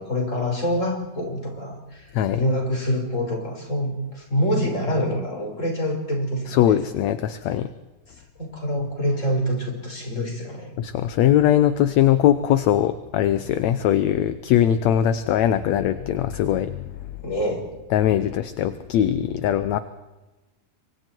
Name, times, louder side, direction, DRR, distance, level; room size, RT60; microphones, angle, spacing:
voice 1, 0.0-6.8 8.4-10.7 17.2-17.7, equal, 20° left, 1 dB, 5.8 m, -26 dB
voice 2, 6.5-7.7 10.8-16.9 17.9-19.8, left 11 dB, 70° left, 12 dB, 1.9 m, -21 dB
28.0 x 24.0 x 4.6 m, 1.1 s
omnidirectional pair, 3.7 m